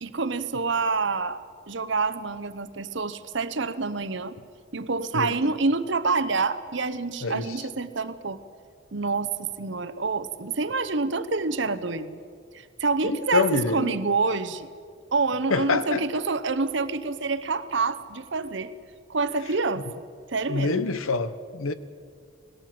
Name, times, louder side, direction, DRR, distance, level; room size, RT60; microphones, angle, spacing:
voice 1, 0.0-4.4 4.7-8.4 8.9-12.2 12.5-14.7 15.1-18.7 19.1-19.8 20.3-20.9, right 4 dB, 60° right, 0.9 m, -27 dB
voice 2, 5.1-5.5 7.2-7.5 13.0-13.9 15.5-16.0 20.5-21.7, left 4 dB, 90° left, 1.0 m, -26 dB
20.0 x 17.0 x 7.7 m
head